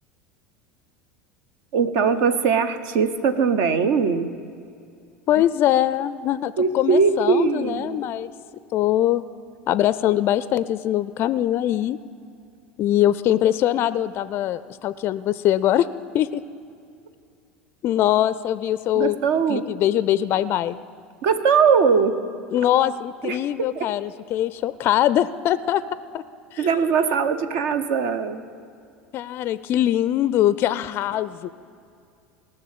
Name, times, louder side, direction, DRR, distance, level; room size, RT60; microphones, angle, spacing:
voice 1, 1.7-4.3 5.4-5.5 6.6-8.0 18.9-19.6 21.2-22.1 23.2-23.4 23.7-23.9 26.6-28.4, right 6 dB, 60° right, 10 dB, 0.8 m, -20 dB
voice 2, 5.3-8.3 8.7-9.2 9.7-12.0 12.8-15.9 16.1-16.4 17.8-19.2 19.5-20.8 22.5-25.8 26.1-26.2 26.5-26.7 29.1-31.5, left 12 dB, 40° left, 16 dB, 0.4 m, -22 dB
18.0 x 6.6 x 7.4 m, 2.4 s
figure-of-eight pair, 75°, 6 cm